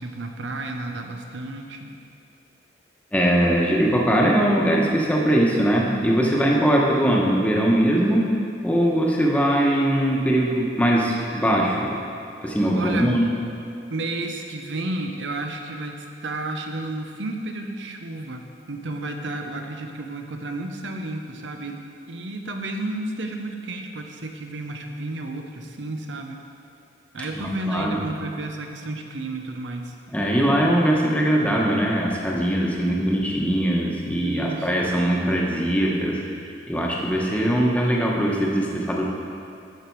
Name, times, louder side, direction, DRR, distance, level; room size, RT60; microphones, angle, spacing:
voice 1, 0.0-1.9 12.8-13.2 13.9-21.8 22.1-26.4 27.1-29.9 34.2-35.0, right 2 dB, 90° right, 3 dB, 0.8 m, -32 dB
voice 2, 3.1-8.2 8.6-11.9 12.4-13.3 27.3-28.0 30.1-36.2 36.7-39.0, right 1 dB, 10° left, -3 dB, 1.1 m, -21 dB
14.0 x 5.1 x 4.6 m, 2.5 s
head